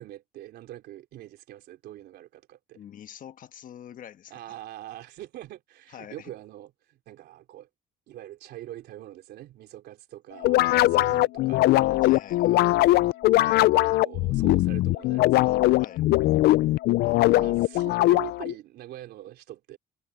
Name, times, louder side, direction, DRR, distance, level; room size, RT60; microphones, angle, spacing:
voice 1, 0.0-2.8 4.3-7.7 8.1-12.1 12.5-12.7 13.4-15.6 17.1-19.8, right 13 dB, 75° right, 3.7 m, -43 dB
voice 2, 2.7-4.6 5.9-6.3 10.9-11.2 12.0-12.6 15.8-16.0, left 10 dB, 55° left, 1.4 m, -45 dB
sound 1, 10.4-18.5, left 17 dB, 75° left, 0.4 m, -21 dB
cardioid pair, 110°, 17 cm